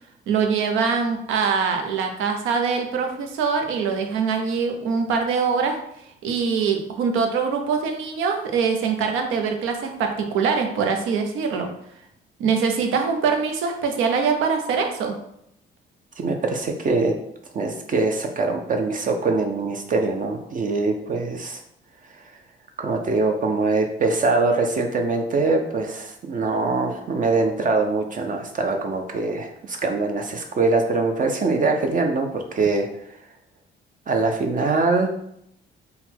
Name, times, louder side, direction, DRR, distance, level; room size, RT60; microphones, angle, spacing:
voice 1, 0.3-5.8 6.2-11.7 12.4-15.2, right 5 dB, 85° right, 4 dB, 0.7 m, -23 dB
voice 2, 16.2-17.1 17.5-21.6 22.1-22.2 22.8-33.2 34.1-35.1, right 3 dB, 40° right, 3 dB, 0.5 m, -23 dB
4.0 x 2.2 x 4.2 m, 0.75 s
cardioid pair, 90°, 20 cm